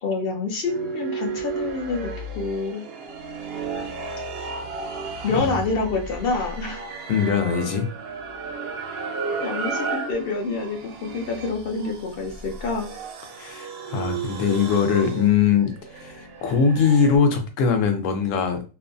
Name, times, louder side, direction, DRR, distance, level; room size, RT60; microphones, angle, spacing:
voice 1, 0.0-2.1 2.4-2.8 5.2-6.8 9.4-12.9, left 4 dB, 60° left, 1 dB, 0.6 m, -27 dB
sound 1, 0.7-17.2, right 4 dB, 60° right, 0.7 m, -33 dB
voice 2, 5.3-5.6 7.1-7.9 13.4-18.6, left 6 dB, 80° left, 5 dB, 1.0 m, -21 dB
2.6 x 2.1 x 2.5 m, 0.33 s
omnidirectional pair, 1.3 m